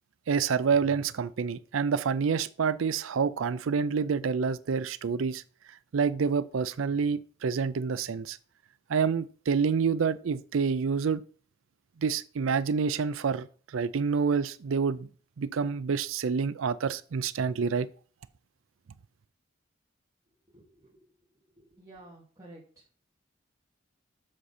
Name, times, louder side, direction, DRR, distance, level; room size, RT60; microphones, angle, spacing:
voice 1, 0.3-5.4 5.9-8.4 8.9-11.2 12.0-13.5 13.7-15.1 15.4-17.9, right 6 dB, 85° right, 0.4 m, -28 dB
voice 2, 20.5-21.0 21.6-22.6, right 1 dB, 15° right, 2.5 m, -51 dB
7.5 x 6.7 x 4.2 m
head